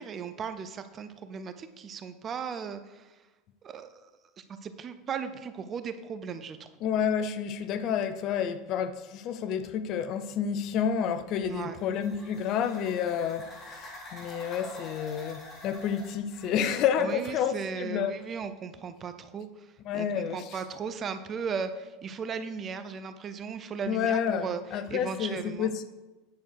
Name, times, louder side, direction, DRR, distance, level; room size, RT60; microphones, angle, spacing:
voice 1, 0.0-3.2 3.6-4.0 4.4-6.7 11.4-11.8 17.0-25.7, right 6 dB, 35° right, 0.8 m, -37 dB
voice 2, 6.8-18.1 19.8-20.4 23.9-25.8, left 8 dB, 50° left, 0.6 m, -30 dB
sound 1, 11.3-16.6, left 1 dB, 30° left, 3.2 m, -46 dB
9.4 x 6.4 x 4.7 m
hypercardioid pair, 80°, 0 cm